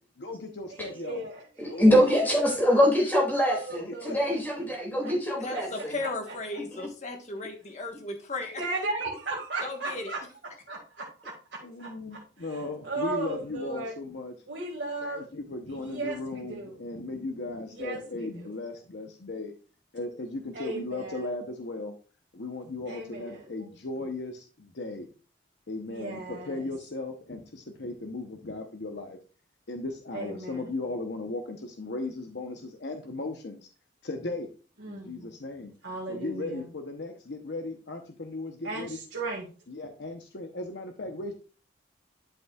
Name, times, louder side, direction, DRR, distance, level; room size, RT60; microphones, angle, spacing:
voice 1, 0.2-1.3 1.6-2.1 3.9-4.4 11.6-14.3 15.0-19.5 19.9-22.0 22.3-25.1 25.7-29.2 29.7-33.7 34.0-34.5 34.9-35.7 36.1-39.0 39.7-41.3, left 2 dB, 65° left, 4 dB, 0.8 m, -37 dB
voice 2, 0.8-2.7 3.4-4.1 5.0-5.1 5.5-5.6 6.0-6.3 8.6-10.2 10.7-11.3 11.8-12.2 12.5-12.6 12.8-13.9 14.5-15.2 15.7-16.7 17.7-18.4 20.5-21.3 22.9-23.4 25.9-26.6 30.1-30.6 34.8-35.2 35.8-36.7 38.6-39.5, right 2 dB, 70° right, -3 dB, 1.9 m, -36 dB
voice 3, 1.6-5.9, equal, 10° left, -1 dB, 2.3 m, -23 dB
voice 4, 5.4-8.6 9.6-10.1, left 2 dB, 40° left, 4 dB, 1.3 m, -35 dB
11.0 x 5.4 x 2.3 m, 0.36 s
head